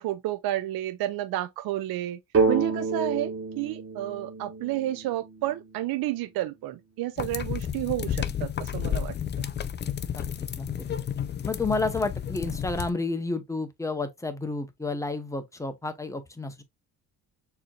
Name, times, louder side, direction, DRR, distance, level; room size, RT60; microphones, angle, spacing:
voice 1, 0.0-2.2 2.5-9.1, right 14 dB, 65° right, 0.5 m, -31 dB
sound 1, 2.3-6.0, right 4 dB, 35° right, 1.5 m, -29 dB
sound 2, 7.2-12.9, left 8 dB, 30° left, 0.4 m, -31 dB
voice 2, 11.4-16.6, left 3 dB, 10° left, 0.8 m, -30 dB
6.7 x 3.0 x 2.4 m
cardioid pair, 135°, 39 cm